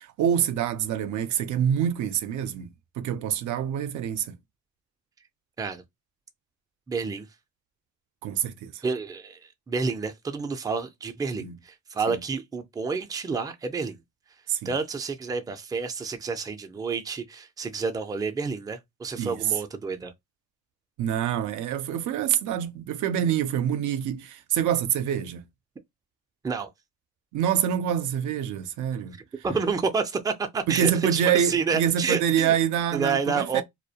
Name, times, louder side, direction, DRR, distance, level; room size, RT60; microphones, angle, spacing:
voice 1, 0.0-2.7 3.0-4.4 8.2-8.8 11.4-11.6 12.1-12.2 14.5-14.7 19.2-19.4 21.0-25.4 27.3-29.2 30.7-33.6, right 9 dB, 80° right, 0.5 m, -26 dB
voice 2, 6.9-7.3 8.8-14.0 14.6-20.1 26.4-26.7 29.1-32.5 32.9-33.6, right 5 dB, 15° right, 0.4 m, -29 dB
2.2 x 2.1 x 2.7 m
cardioid pair, 90°, 30 cm